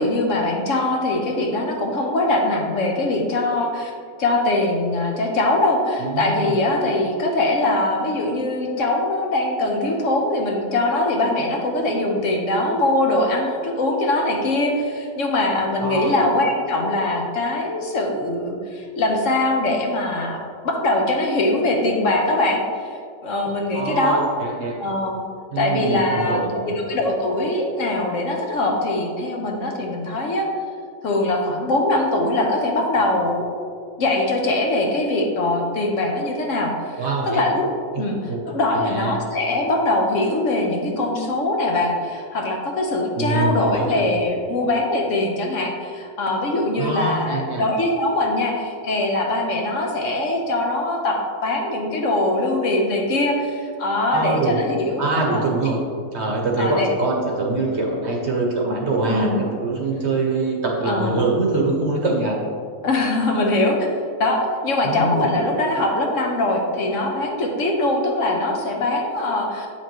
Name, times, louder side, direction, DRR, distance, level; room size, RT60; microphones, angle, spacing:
voice 1, 0.0-3.9 4.2-24.2 24.8-25.2 25.6-30.5 31.0-33.5 34.0-37.7 38.0-38.2 38.5-55.0 55.3-55.4 56.6-56.9 59.1-59.4 60.9-61.2 62.8-63.8 64.2-69.7, left 2 dB, 60° left, 1 dB, 1.1 m, -22 dB
voice 2, 6.0-6.5 15.8-16.1 23.7-24.8 25.5-26.8 37.0-37.5 38.3-38.4 38.7-39.2 43.2-44.0 46.8-47.6 54.1-54.6 55.0-55.8 56.1-62.4 64.8-65.4, right 2 dB, 55° right, 0 dB, 1.1 m, -23 dB
7.7 x 5.7 x 3.0 m, 2.2 s
omnidirectional pair, 1.6 m